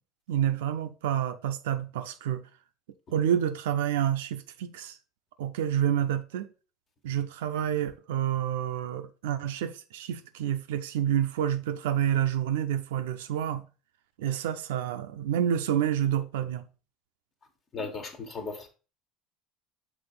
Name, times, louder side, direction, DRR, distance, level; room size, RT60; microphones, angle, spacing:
voice 1, 0.3-2.4 3.1-5.0 5.4-6.5 7.0-13.6 14.2-16.6, right 10 dB, 75° right, 0.5 m, -28 dB
voice 2, 17.7-18.7, left 4 dB, 40° left, 1.5 m, -36 dB
6.0 x 3.1 x 5.2 m
hypercardioid pair, 70°, 0 cm